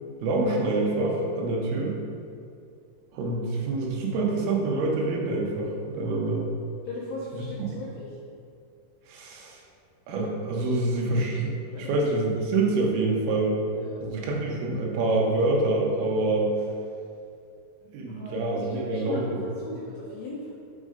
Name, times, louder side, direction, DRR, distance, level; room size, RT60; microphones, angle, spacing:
voice 1, 0.2-2.0 3.1-6.5 7.3-7.7 9.1-9.6 10.1-13.6 14.0-16.5 17.9-19.4, right 2 dB, 75° right, -2 dB, 2.9 m, -26 dB
voice 2, 6.8-8.1 11.7-11.9 13.7-14.1 18.1-20.5, left 2 dB, 85° left, -8 dB, 1.5 m, -38 dB
5.5 x 5.2 x 5.0 m, 2.4 s
omnidirectional pair, 4.7 m